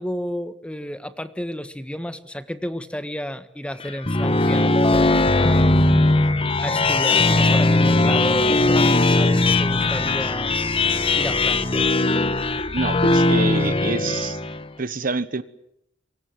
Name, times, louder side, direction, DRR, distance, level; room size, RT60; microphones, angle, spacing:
voice 1, 0.0-4.8 5.3-6.2 6.6-10.5 11.1-11.9, equal, 5° left, 1.4 m, -31 dB
sound 1, 3.8-14.6, left 2 dB, 30° left, 1.2 m, -19 dB
voice 2, 12.7-14.4 14.8-15.4, right 3 dB, 50° right, 1.2 m, -26 dB
28.0 x 24.0 x 7.7 m
head